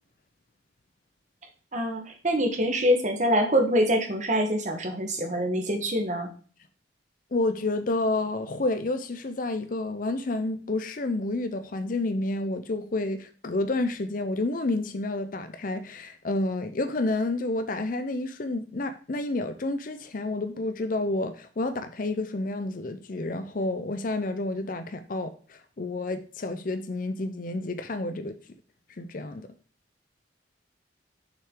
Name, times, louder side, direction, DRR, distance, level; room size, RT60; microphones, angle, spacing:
voice 1, 1.7-6.3, equal, 40° right, 1.2 m, -25 dB
voice 2, 7.3-28.3 29.0-29.5, left 2 dB, 45° left, 0.5 m, -30 dB
6.8 x 5.6 x 3.7 m
head